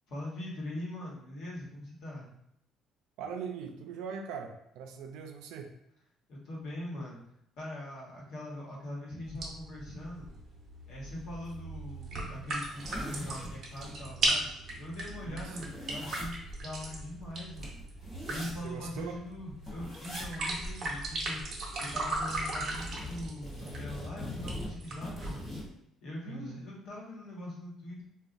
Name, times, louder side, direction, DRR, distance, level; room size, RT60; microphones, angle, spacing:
voice 1, 0.1-2.3 6.3-7.2 7.6-10.3 10.9-17.8 18.3-25.5 26.0-28.0, left 1 dB, 60° left, -3 dB, 1.0 m, -42 dB
voice 2, 3.2-5.7 15.2-15.7 18.6-19.3 26.3-26.6, right 6 dB, 85° right, 3 dB, 0.4 m, -41 dB
sound 1, 9.3-25.3, right 2 dB, 35° right, 0.7 m, -37 dB
sound 2, 11.4-11.5 11.9-12.0 12.4-14.0 14.4-14.5 14.7-19.1 19.6-20.3 20.6-20.7 21.1-22.0 22.3-25.7, left 1 dB, 15° left, 0.9 m, -43 dB
3.8 x 2.3 x 2.5 m, 0.78 s
cardioid pair, 175°, 0 cm